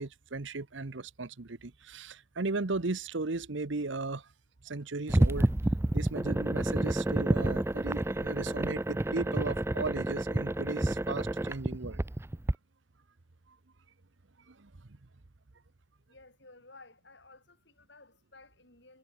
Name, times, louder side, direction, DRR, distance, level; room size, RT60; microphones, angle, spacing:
voice 1, 0.0-4.3 4.6-5.5 5.9-12.0 14.5-14.7, right 3 dB, 70° right, 1.0 m, -36 dB
sound 1, 5.1-12.5, right 1 dB, 15° right, 0.4 m, -29 dB
voice 2, 16.1-19.0, left 3 dB, 60° left, 6.0 m, -56 dB
head